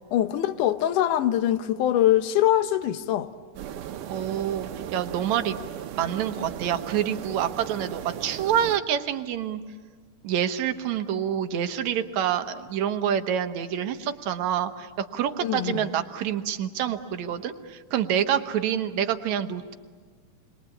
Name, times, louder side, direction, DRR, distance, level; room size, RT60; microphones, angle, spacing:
voice 1, 0.1-3.3 15.4-15.9, left 12 dB, 85° left, 2.5 m, -23 dB
sound 1, 3.6-8.8, right 10 dB, 85° right, 2.5 m, -37 dB
voice 2, 4.1-5.6 6.0-9.6 10.2-19.7, right 9 dB, 70° right, 2.3 m, -27 dB
29.0 x 22.5 x 8.6 m
omnidirectional pair, 3.5 m